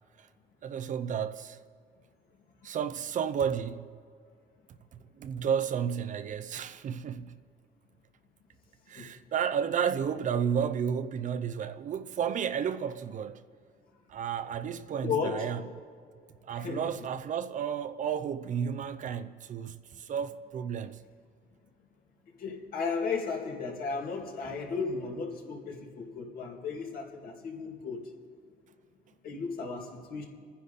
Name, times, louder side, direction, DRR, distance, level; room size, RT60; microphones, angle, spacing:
voice 1, 0.6-1.6 2.6-3.9 5.2-7.3 8.9-13.4 14.1-15.6 16.5-21.0, right 7 dB, 50° right, 0.6 m, -32 dB
voice 2, 15.0-15.5 16.5-16.9 22.4-28.1 29.2-30.3, left 5 dB, 60° left, 2.5 m, -34 dB
28.0 x 9.9 x 4.1 m
cardioid pair, 110°, 17 cm